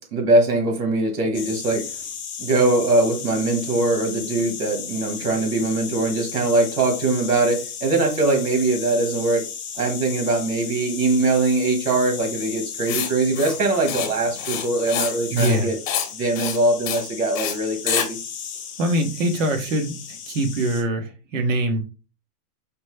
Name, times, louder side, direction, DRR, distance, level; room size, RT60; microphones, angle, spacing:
voice 1, 0.1-1.8 2.4-9.4 9.7-15.8 16.1-18.2, right 2 dB, 90° right, 3 dB, 1.6 m, -22 dB
sound 1, 1.3-20.8, left 7 dB, 20° left, 0.6 m, -35 dB
Writing, 12.9-13.1 13.4-13.6 13.9-14.1 14.4-15.1 15.4-15.6 15.9-16.1 16.4-16.6 16.9-17.0 17.4-17.5 17.9-18.1, left 9 dB, 60° left, 0.9 m, -26 dB
voice 2, 15.3-15.7 18.8-21.8, right 1 dB, 55° right, 6 dB, 1.1 m, -23 dB
5.1 x 2.0 x 3.2 m, 0.32 s
hypercardioid pair, 145°, 46 cm